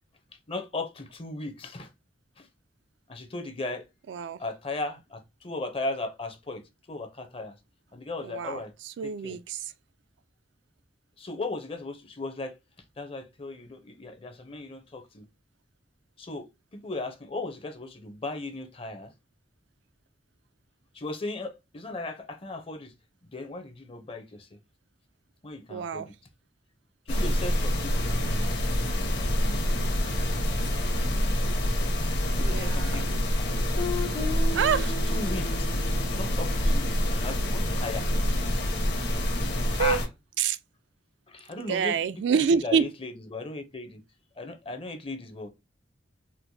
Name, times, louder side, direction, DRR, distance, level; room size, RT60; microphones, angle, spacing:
voice 1, 0.5-1.9 2.4-2.5 3.1-3.9 4.4-6.6 6.9-7.5 7.9-8.7 9.0-9.4 11.2-12.6 13.0-15.2 16.2-19.1 20.9-22.9 23.3-24.6 25.4-26.1 27.1-28.5 31.6-31.9 32.4-33.6 35.1-35.7 36.2-38.2 39.8-40.0 41.3-44.0 44.4-45.5, left 2 dB, 30° left, 0.6 m, -37 dB
voice 2, 4.1-4.4 8.2-9.6 25.7-26.1 32.4-33.0 34.5-34.9 39.7-40.0 40.4-40.6 41.6-42.9, right 6 dB, 65° right, 0.3 m, -27 dB
sound 1, 27.1-40.1, left 1 dB, 60° left, 1.0 m, -26 dB
Guitar, 33.8-38.4, left 2 dB, 85° left, 1.0 m, -38 dB
4.4 x 2.1 x 2.6 m
head